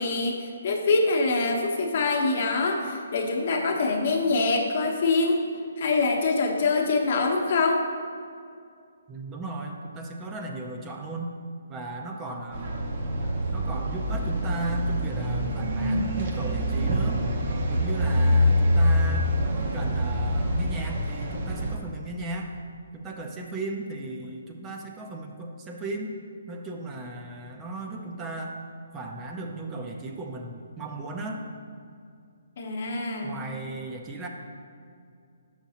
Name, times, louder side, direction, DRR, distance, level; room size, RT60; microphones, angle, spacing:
voice 1, 0.0-5.4 5.8-7.8 32.6-33.4, left 3 dB, 50° left, 1 dB, 0.9 m, -24 dB
voice 2, 9.1-11.3 11.7-13.0 13.5-17.2 17.7-19.3 19.7-22.5 22.9-26.2 26.5-28.6 28.9-31.4 33.2-34.3, right 2 dB, 20° right, 2 dB, 0.5 m, -36 dB
sound 1, 12.5-21.7, equal, 50° right, 0.8 m, -25 dB
6.8 x 5.8 x 2.8 m, 2.3 s
hypercardioid pair, 145°, 0 cm